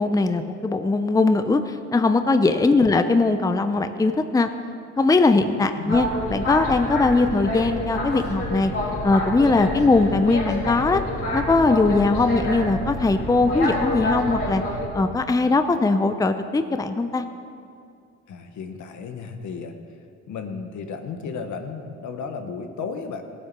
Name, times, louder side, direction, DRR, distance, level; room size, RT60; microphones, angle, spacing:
voice 1, 0.0-4.5 5.0-8.7 9.0-11.0 11.3-14.6 14.9-17.2, left 3 dB, 10° left, 9 dB, 0.6 m, -20 dB
voice 2, 5.6-5.9 12.0-12.3 18.3-19.7 20.3-23.2, left 5 dB, 70° left, 6 dB, 1.3 m, -34 dB
Boat Water vehicle, 5.9-14.9, left 1 dB, 50° left, 3.7 m, -28 dB
16.0 x 8.2 x 6.0 m, 2.4 s
cardioid pair, 90°, 30 cm